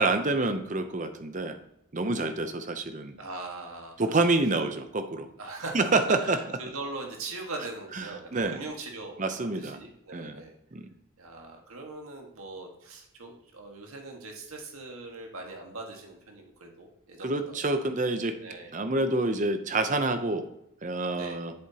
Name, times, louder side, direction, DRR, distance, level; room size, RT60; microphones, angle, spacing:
voice 1, 0.0-1.6 1.9-3.2 4.0-5.3 5.7-6.4 8.0-8.1 8.3-8.6 9.2-9.8 10.1-10.4 10.7-10.9 17.2-18.4 18.7-20.5 20.8-21.5, right 2 dB, 35° right, 8 dB, 0.7 m, -27 dB
voice 2, 3.2-4.2 5.4-10.5 11.2-17.7 18.4-18.7 21.1-21.4, right 2 dB, 80° right, 2 dB, 1.6 m, -40 dB
7.7 x 7.3 x 2.9 m, 0.80 s
head